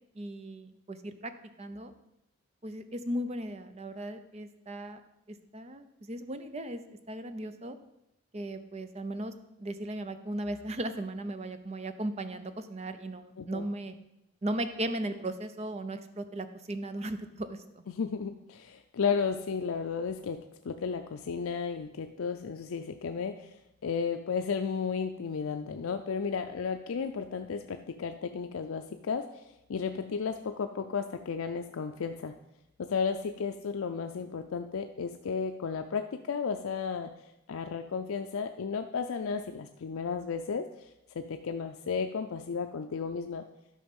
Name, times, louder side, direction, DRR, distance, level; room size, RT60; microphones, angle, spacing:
voice 1, 0.2-1.3 1.6-1.9 2.6-5.0 5.3-6.8 7.1-7.8 8.3-9.3 9.6-13.9 14.4-17.6, right 1 dB, 30° right, 10 dB, 0.6 m, -36 dB
voice 2, 13.4-13.7 17.9-32.3 32.8-43.5, left 5 dB, 80° left, 6 dB, 0.5 m, -34 dB
12.0 x 5.4 x 5.3 m, 0.87 s
head